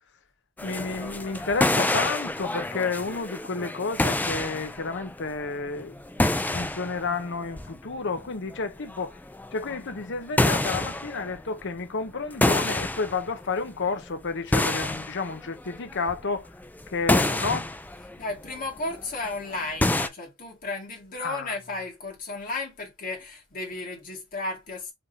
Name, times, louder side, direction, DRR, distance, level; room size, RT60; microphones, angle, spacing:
voice 1, 0.6-6.0 6.4-9.2 9.5-16.5 16.9-17.7 21.2-21.6, left 4 dB, 60° left, 0.8 m, -31 dB
sound 1, 0.6-10.1 10.4-11.8 12.2-13.5 13.9-19.3 19.8-20.1, left 1 dB, 10° left, 0.4 m, -28 dB
voice 2, 18.0-24.9, left 2 dB, 40° left, 2.2 m, -34 dB
4.9 x 3.5 x 2.8 m
head